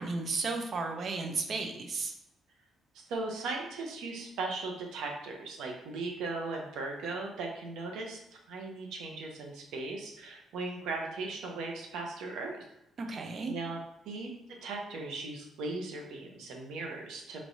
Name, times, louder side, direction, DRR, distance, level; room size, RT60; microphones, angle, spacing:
voice 1, 0.0-2.1 13.0-13.5, right 4 dB, 50° right, 4 dB, 0.6 m, -34 dB
voice 2, 2.9-12.7 13.1-13.2 13.5-13.8 14.1-17.4, right 3 dB, 85° right, 1 dB, 0.8 m, -38 dB
4.5 x 3.0 x 2.7 m, 0.84 s
cardioid pair, 90°, 0 cm